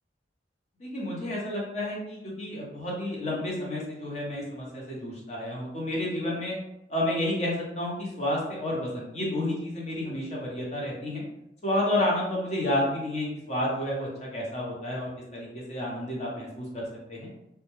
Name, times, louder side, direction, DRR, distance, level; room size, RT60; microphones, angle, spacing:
voice 1, 0.8-6.6 6.9-11.2 11.6-17.3, left 1 dB, 40° left, -4 dB, 0.7 m, -30 dB
2.2 x 2.0 x 2.9 m, 0.83 s
head